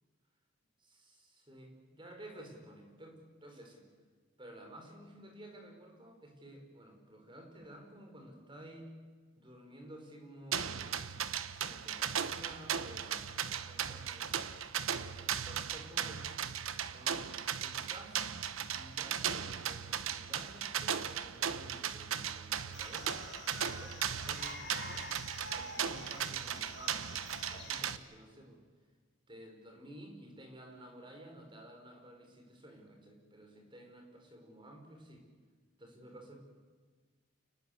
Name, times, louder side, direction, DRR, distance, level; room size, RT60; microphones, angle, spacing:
voice 1, 0.9-3.9 4.4-9.0 9.4-11.0 11.4-14.5 15.1-16.2 16.9-17.3 17.6-18.3 18.7-25.1 25.5-27.2 27.5-28.6 29.3-35.3 35.8-36.4, right 1 dB, 25° right, 3 dB, 5.2 m, -53 dB
sound 1, 10.5-28.0, right 8 dB, 90° right, 1.1 m, -37 dB
sound 2, 22.7-27.9, left 3 dB, 55° left, 2.6 m, -49 dB
29.5 x 19.5 x 8.0 m, 1.5 s
head